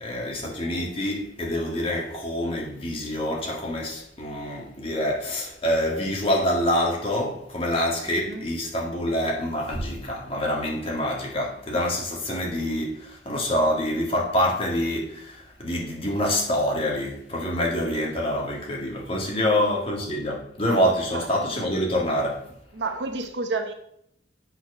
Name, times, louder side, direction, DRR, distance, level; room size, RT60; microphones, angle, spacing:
voice 1, 0.0-22.4, equal, 30° left, 2.1 m, -26 dB
voice 2, 19.3-19.8 21.1-21.3 22.7-23.7, right 3 dB, 75° right, 1.0 m, -31 dB
7.9 x 4.6 x 6.1 m
head